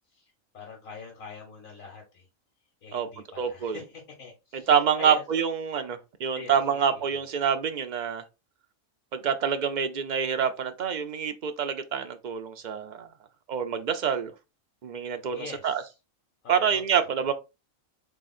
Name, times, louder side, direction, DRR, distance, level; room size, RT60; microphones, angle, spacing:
voice 1, 0.1-2.3 2.8-5.2 6.3-7.2 15.3-15.8 16.4-16.8 17.2-17.3, left 5 dB, 75° left, 1.5 m, -44 dB
voice 2, 3.4-3.8 4.5-8.2 9.1-13.1 13.5-14.3 14.8-15.8 16.5-17.3, right 7 dB, 55° right, 0.5 m, -26 dB
3.7 x 3.1 x 4.1 m
omnidirectional pair, 1.4 m